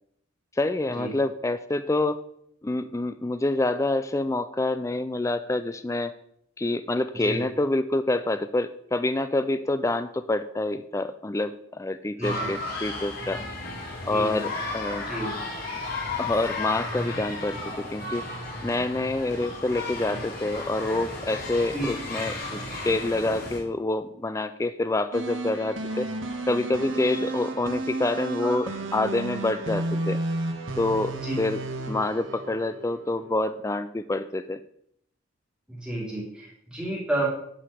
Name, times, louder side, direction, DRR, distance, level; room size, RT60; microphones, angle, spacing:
voice 1, 0.6-2.2 2.6-6.1 6.6-13.4 14.0-15.1 16.2-18.3 18.6-26.1 26.5-30.2 30.8-31.6 31.9-34.6, left 2 dB, 15° left, 11 dB, 0.4 m, -27 dB
sound 1, 12.2-23.6, left 2 dB, 50° left, 3.3 m, -34 dB
voice 2, 12.2-12.5 14.1-14.4 15.1-15.3 20.1-20.2 21.7-21.9 28.4-28.6 31.2-31.4 35.7-37.3, right 2 dB, 5° right, -5 dB, 2.6 m, -31 dB
sound 2, 25.1-33.3, right 2 dB, 65° right, 1.6 m, -32 dB
11.0 x 5.8 x 6.9 m, 0.70 s
head